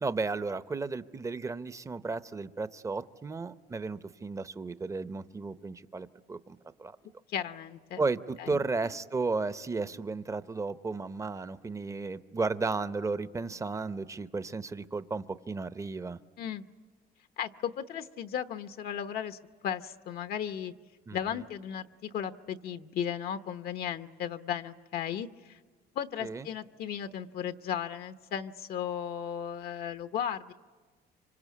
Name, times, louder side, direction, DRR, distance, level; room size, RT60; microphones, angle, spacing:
voice 1, 0.0-7.0 8.0-16.2 21.1-21.4 26.2-26.5, right 3 dB, 20° right, 13 dB, 0.7 m, -34 dB
voice 2, 7.3-8.0 8.4-8.6 16.4-16.6 17.4-20.7 21.1-25.6 25.9-30.5, left 9 dB, 65° left, 9 dB, 0.9 m, -35 dB
26.0 x 25.0 x 8.4 m, 1.4 s
cardioid pair, 110°, 17 cm